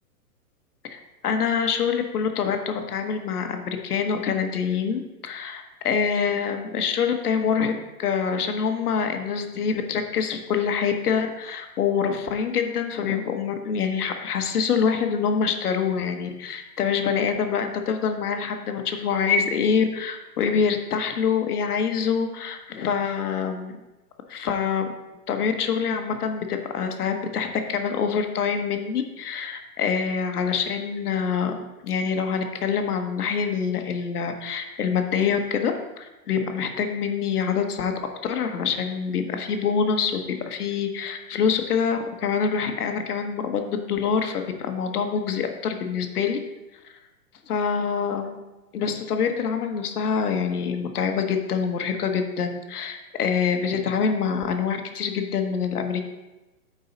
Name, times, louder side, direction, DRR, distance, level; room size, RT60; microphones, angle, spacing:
voice 1, 0.9-23.8 24.3-24.9 25.3-31.5 31.8-35.7 36.0-37.9 38.2-46.4 47.5-48.4 48.7-56.0, left 6 dB, 75° left, 5 dB, 1.2 m, -25 dB
8.4 x 4.7 x 4.0 m, 1.1 s
hypercardioid pair, 145°, 46 cm